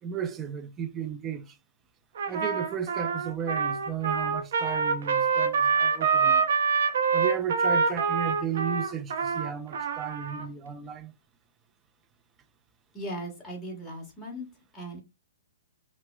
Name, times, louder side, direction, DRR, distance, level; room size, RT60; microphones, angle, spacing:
voice 1, 0.0-1.6 2.3-6.4 7.1-11.1, right 8 dB, 20° right, 0.4 m, -34 dB
Trumpet, 2.2-10.5, right 5 dB, 65° right, 0.7 m, -26 dB
voice 2, 12.9-14.5 14.7-15.0, right 1 dB, 15° left, 1.4 m, -38 dB
5.5 x 2.1 x 2.2 m
hypercardioid pair, 145°, 0 cm